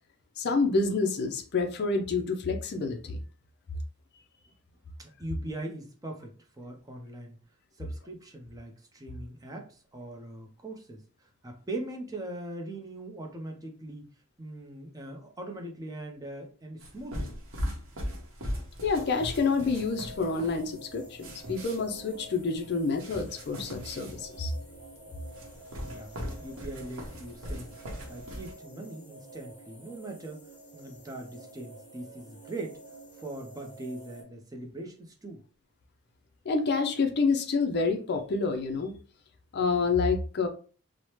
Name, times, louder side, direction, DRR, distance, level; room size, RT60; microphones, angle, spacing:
voice 1, 0.4-3.2 18.8-24.5 36.5-39.0 39.5-40.5, left 4 dB, 45° left, 5 dB, 0.4 m, -28 dB
voice 2, 5.0-7.4 7.7-14.1 14.4-17.4 25.8-26.1 26.4-27.8 28.1-30.5 30.7-32.8 33.2-35.4, right 1 dB, 15° right, 2 dB, 0.4 m, -41 dB
sound 1, 16.8-28.5, equal, 60° right, 0.8 m, -39 dB
sound 2, 18.9-34.2, right 2 dB, 20° left, 1.1 m, -49 dB
3.1 x 2.0 x 2.8 m, 0.38 s
head